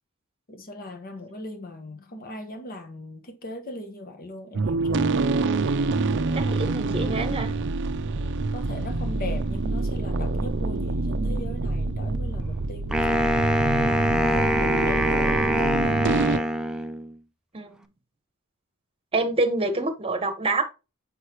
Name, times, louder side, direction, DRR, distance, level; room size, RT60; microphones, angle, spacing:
voice 1, 0.5-5.1 6.4-6.6 7.0-7.5 8.5-13.4 13.7-16.5 19.7-19.9, left 1 dB, 40° left, 1.1 m, -39 dB
sound 1, 4.5-16.4, right 3 dB, 55° right, 0.5 m, -26 dB
voice 2, 6.3-7.5 17.5-17.8 19.1-20.6, right 2 dB, 25° right, 1.1 m, -26 dB
Wind instrument woodwind instrument, 12.9-17.1, equal, 5° right, 0.4 m, -24 dB
6.4 x 5.4 x 2.9 m
head